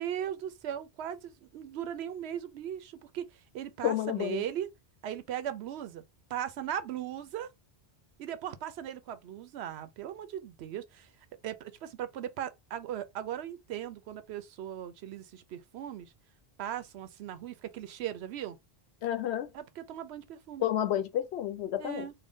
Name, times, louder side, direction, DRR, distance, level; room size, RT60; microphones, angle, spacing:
voice 1, 0.0-4.7 5.0-6.0 6.3-7.5 8.2-11.1 11.4-16.1 16.6-18.6 19.5-20.7 21.8-22.1, right 10 dB, 90° right, 0.9 m, -38 dB
voice 2, 3.8-4.4 19.0-19.5 20.6-22.1, left 11 dB, 90° left, 0.9 m, -30 dB
3.8 x 2.1 x 3.5 m
omnidirectional pair, 1.1 m